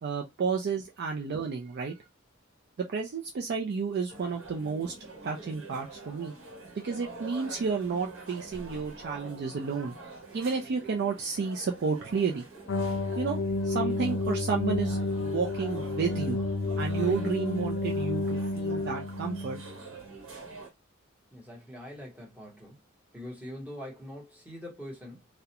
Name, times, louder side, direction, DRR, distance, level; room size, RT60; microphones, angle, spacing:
voice 1, 0.0-2.0 2.8-4.9 5.2-6.3 6.7-10.0 10.3-12.4 13.2-16.4 16.8-19.6, right 5 dB, 55° right, 0.4 m, -31 dB
sound 1, 4.1-20.7, right 3 dB, 70° right, 1.0 m, -46 dB
sound 2, 12.7-19.8, left 2 dB, 60° left, 0.4 m, -30 dB
voice 2, 21.3-22.8 23.1-25.3, left 1 dB, 10° right, 1.0 m, -43 dB
2.4 x 2.1 x 2.8 m
head